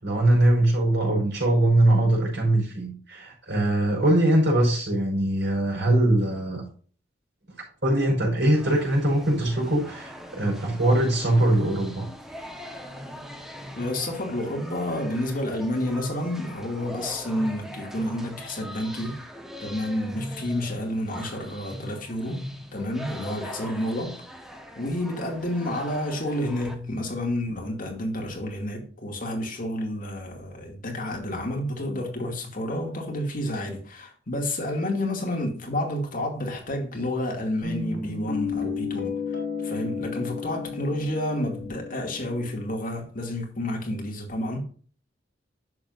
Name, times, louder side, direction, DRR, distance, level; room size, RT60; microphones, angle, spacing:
voice 1, 0.0-6.6 7.8-12.1, right 1 dB, 65° right, 5.0 m, -22 dB
sound 1, 8.5-26.7, equal, ahead, 1.2 m, -41 dB
voice 2, 13.7-19.2 19.6-22.4 22.7-24.2 24.8-39.4 39.6-44.6, left 1 dB, 50° left, 2.3 m, -30 dB
Guitar, 37.6-42.7, left 5 dB, 70° left, 2.8 m, -32 dB
10.5 x 7.7 x 2.6 m
head